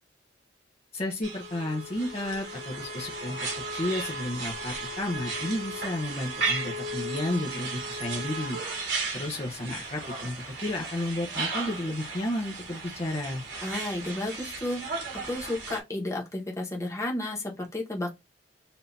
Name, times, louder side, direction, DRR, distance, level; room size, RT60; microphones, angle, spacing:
voice 1, 0.9-3.4 3.7-8.6 9.1-13.4, left 1 dB, 35° left, 0.8 m, -32 dB
sound 1, 1.2-15.8, right 3 dB, 80° right, 2.1 m, -35 dB
voice 2, 13.6-18.1, left 1 dB, 15° left, 1.3 m, -32 dB
7.0 x 2.8 x 2.7 m
head